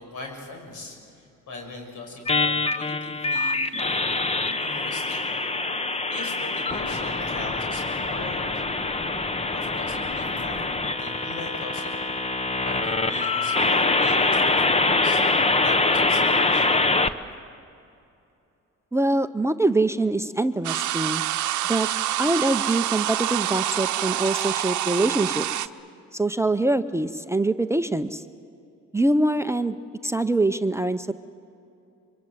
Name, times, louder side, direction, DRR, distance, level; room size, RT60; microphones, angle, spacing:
voice 1, 0.0-4.2 4.5-5.3 6.1-8.6 9.5-10.6 10.9-11.9 12.6-15.2 15.6-16.7, left 2 dB, 85° left, 2 dB, 6.5 m, -39 dB
sound 1, 2.3-17.1, left 3 dB, 20° left, 1.0 m, -24 dB
voice 2, 18.9-21.2 21.7-21.9 22.2-25.5 26.1-28.2 28.9-29.8 30.0-31.1, right 2 dB, 10° right, 9 dB, 0.7 m, -24 dB
sound 2, 20.6-25.7, right 13 dB, 75° right, 0.8 m, -26 dB
25.0 x 24.0 x 7.9 m, 2.6 s
cardioid pair, 90°, 30 cm